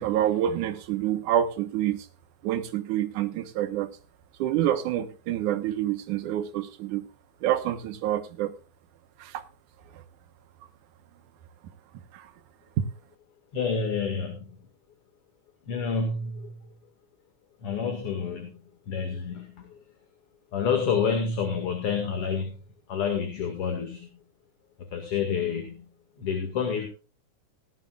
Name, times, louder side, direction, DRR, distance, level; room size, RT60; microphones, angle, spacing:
voice 1, 0.0-2.1 2.4-3.9 4.4-7.1 7.4-8.5 9.2-9.4 9.9-10.0 12.1-12.3 12.8-12.9, right 11 dB, 75° right, 9 dB, 2.6 m, -27 dB
voice 2, 13.5-14.6 15.7-16.6 17.6-18.5 18.9-19.8 20.5-22.6 22.9-24.1 24.8-25.9 26.2-26.9, left 6 dB, 50° left, 5 dB, 2.7 m, -28 dB
18.5 x 12.5 x 2.4 m, 0.34 s
omnidirectional pair, 3.7 m